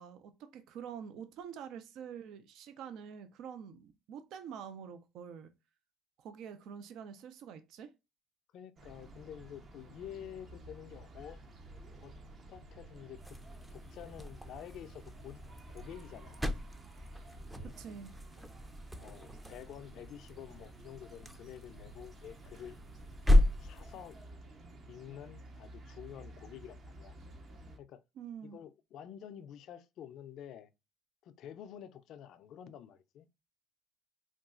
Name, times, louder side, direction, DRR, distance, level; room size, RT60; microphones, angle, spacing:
voice 1, 0.0-5.5 6.2-7.9 17.6-18.1 28.2-28.6, right 7 dB, 70° right, 0.4 m, -46 dB
voice 2, 8.5-11.4 12.0-12.1 12.5-13.4 13.7-15.4 15.7-16.5 17.6-17.7 19.0-22.8 23.6-24.2 24.9-27.1 27.8-28.0 28.4-30.7 31.2-33.3, left 9 dB, 65° left, 0.3 m, -49 dB
sound 1, 8.8-27.8, right 2 dB, 50° right, 0.7 m, -52 dB
sound 2, 13.1-24.3, left 1 dB, 5° right, 0.4 m, -34 dB
3.8 x 2.3 x 2.3 m
supercardioid pair, 85°, 0 cm